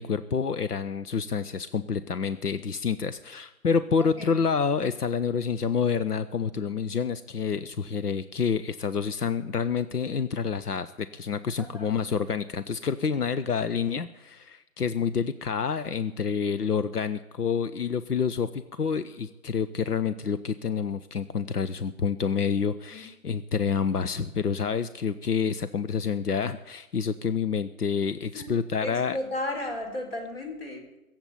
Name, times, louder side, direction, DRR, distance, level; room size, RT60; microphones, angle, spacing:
voice 1, 0.0-29.2, left 6 dB, 85° left, 12 dB, 0.9 m, -28 dB
voice 2, 4.0-4.4 11.6-11.9 22.9-23.0 28.3-28.5 28.8-30.9, left 1 dB, 40° left, 2 dB, 4.4 m, -34 dB
20.0 x 8.0 x 8.7 m, 1.0 s
figure-of-eight pair, 155°, 45 cm